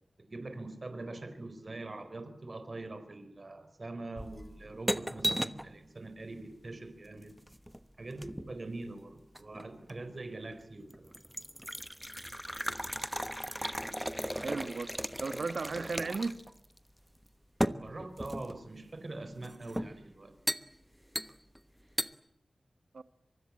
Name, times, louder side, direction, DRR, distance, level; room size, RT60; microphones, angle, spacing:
voice 1, 0.3-7.4 8.0-11.2 17.8-20.3, right 2 dB, 45° right, 4.2 m, -43 dB
sound 1, 4.2-5.7 7.2-8.6 9.4-10.0 10.5-10.6 10.9-16.5 16.8-16.9 17.6-18.6 19.4-20.0 20.5-20.7 21.2-21.6 22.0-22.1, equal, 5° right, 1.2 m, -36 dB
voice 2, 14.4-14.9 15.2-16.4 22.9-23.0, right 4 dB, 75° right, 1.6 m, -35 dB
25.0 x 24.0 x 8.7 m
wide cardioid pair, 90°, 0 cm